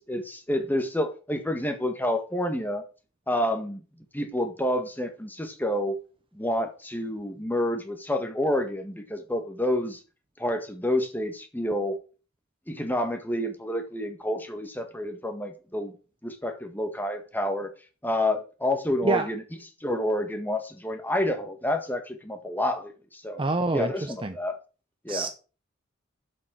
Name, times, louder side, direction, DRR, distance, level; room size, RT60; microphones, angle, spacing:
voice 1, 0.1-2.8 3.3-3.8 4.1-6.0 6.3-10.0 10.4-12.0 12.7-15.9 16.2-17.7 18.0-19.4 19.8-23.4 23.7-24.6 25.0-25.3, left 1 dB, 10° left, 1.7 m, -29 dB
voice 2, 23.4-24.3 25.1-25.3, right 3 dB, 25° right, 0.7 m, -26 dB
7.6 x 6.5 x 7.5 m
head